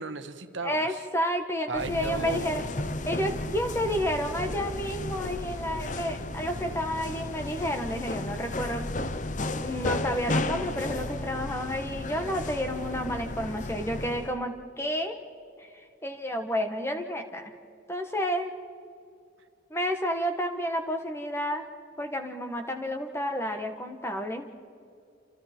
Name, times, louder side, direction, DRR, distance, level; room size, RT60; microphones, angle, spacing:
voice 1, 0.0-1.0 1.7-2.7, right 3 dB, 75° right, 8 dB, 1.4 m, -35 dB
voice 2, 0.6-2.6 3.0-8.8 9.6-15.2 15.6-17.5 17.9-18.5 19.7-21.6 22.0-24.5, equal, 15° left, 5 dB, 1.4 m, -31 dB
sound 1, 1.7-14.4, left 2 dB, 40° left, 0.8 m, -33 dB
28.5 x 27.0 x 4.5 m, 2.4 s
head